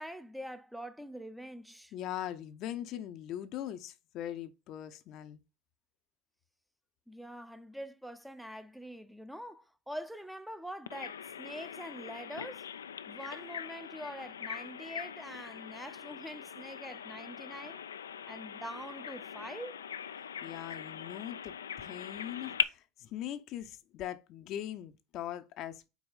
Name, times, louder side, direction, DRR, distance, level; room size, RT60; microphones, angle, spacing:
voice 1, 0.0-1.9 7.1-12.7 13.1-17.8 18.2-19.8, equal, ahead, 0.6 m, -44 dB
voice 2, 1.9-5.4 20.4-25.9, left 11 dB, 55° left, 0.6 m, -41 dB
Bird vocalization bird call bird song, 10.9-22.6, left 8 dB, 90° left, 0.3 m, -41 dB
4.8 x 4.2 x 5.4 m
hypercardioid pair, 80°, 0 cm